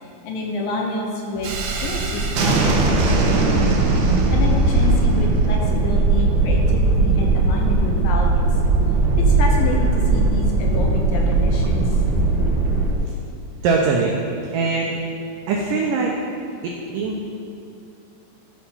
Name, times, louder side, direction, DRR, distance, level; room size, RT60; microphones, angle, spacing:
voice 1, 0.0-3.8 4.3-8.4 9.2-11.9, left 2 dB, 75° left, 0 dB, 2.2 m, -28 dB
Thunderstorm, 1.4-12.9, right 3 dB, 70° right, 2.0 m, -18 dB
voice 2, 13.6-14.2 14.5-15.0 15.5-16.1 16.6-17.2, right 4 dB, 90° right, 0 dB, 1.9 m, -21 dB
12.5 x 4.7 x 5.5 m, 2.5 s
omnidirectional pair, 4.7 m